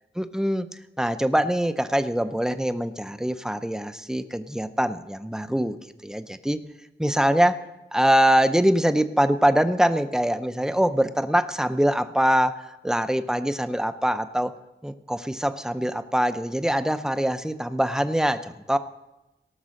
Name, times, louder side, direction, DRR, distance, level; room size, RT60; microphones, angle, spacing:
voice 1, 0.2-0.7 1.0-5.8 6.0-6.6 7.0-7.6 7.9-14.5 14.8-18.8, equal, 5° right, 11 dB, 0.6 m, -23 dB
17.5 x 6.1 x 6.3 m, 0.99 s
wide cardioid pair, 110°, 19 cm